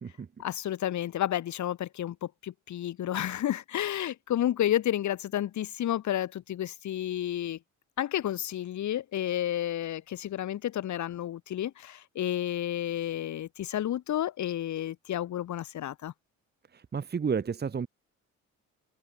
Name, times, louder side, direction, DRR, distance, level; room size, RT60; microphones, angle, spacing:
voice 1, 0.4-7.6 8.0-16.1, left 12 dB, 70° left, 2.5 m, -31 dB
voice 2, 16.7-17.9, right 6 dB, 35° right, 1.3 m, -31 dB
open air
cardioid pair, 90°, 30 cm